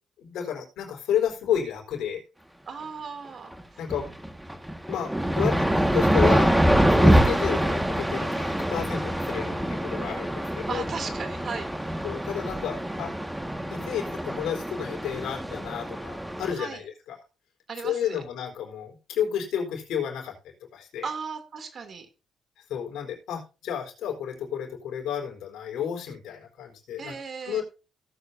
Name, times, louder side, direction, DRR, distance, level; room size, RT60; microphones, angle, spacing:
voice 1, 0.2-2.2 3.8-4.1 4.9-6.6 6.9-10.8 12.0-13.1 13.7-17.2 17.8-21.1 22.7-27.1 27.5-27.6, left 9 dB, 80° left, 2 dB, 4.3 m, -31 dB
voice 2, 2.7-3.5 10.7-12.0 16.5-16.8 17.7-18.1 21.0-22.1 27.0-27.6, right 5 dB, 50° right, 7 dB, 2.9 m, -36 dB
sound 1, 3.5-3.6 3.9-16.5, equal, 5° right, 1.8 m, -25 dB
17.5 x 8.1 x 2.7 m, 0.31 s
cardioid pair, 90°, 0 cm